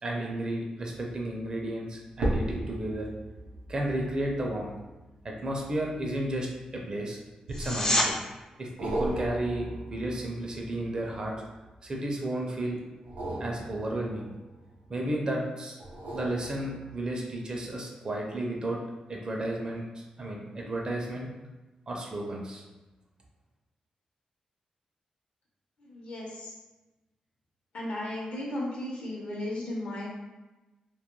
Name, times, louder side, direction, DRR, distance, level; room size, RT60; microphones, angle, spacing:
voice 1, 0.0-3.1 3.7-4.7 5.2-6.5 6.7-7.2 7.6-8.1 8.6-11.3 11.8-12.8 13.4-14.3 14.9-15.8 16.1-18.8 19.1-21.3 21.9-22.6, right 1 dB, 35° right, -1 dB, 0.4 m, -33 dB
sound 1, 2.1-6.8 7.5-8.1 8.8-11.8 13.0-15.1 15.8-17.2 17.7-17.8, right 1 dB, 90° right, 0.5 m, -37 dB
sound 2, 7.5-8.1 19.4-19.5, left 1 dB, 30° left, 0.4 m, -26 dB
voice 2, 25.8-26.6 27.7-30.1, left 1 dB, 60° left, -3 dB, 0.7 m, -35 dB
2.3 x 2.1 x 2.9 m, 1.1 s
wide cardioid pair, 115°, 2 cm